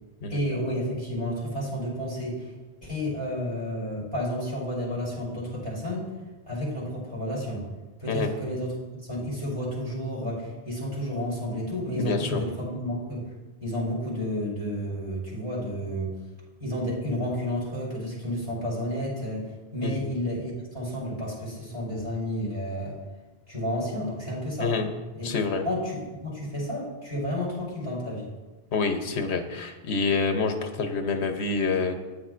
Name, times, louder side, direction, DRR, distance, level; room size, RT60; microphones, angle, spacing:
voice 1, 0.3-2.5 2.8-6.1 6.5-7.7 8.0-8.7 9.0-13.3 13.6-16.1 16.6-19.5 19.7-22.9 23.5-24.7 25.1-25.3 25.6-28.3, equal, 25° right, -6 dB, 3.8 m, -31 dB
voice 2, 12.0-12.4 19.8-20.0 24.6-24.9 25.2-25.6 28.7-32.0, left 4 dB, 85° left, 6 dB, 1.1 m, -27 dB
13.0 x 9.3 x 2.5 m, 1.2 s
omnidirectional pair, 1.1 m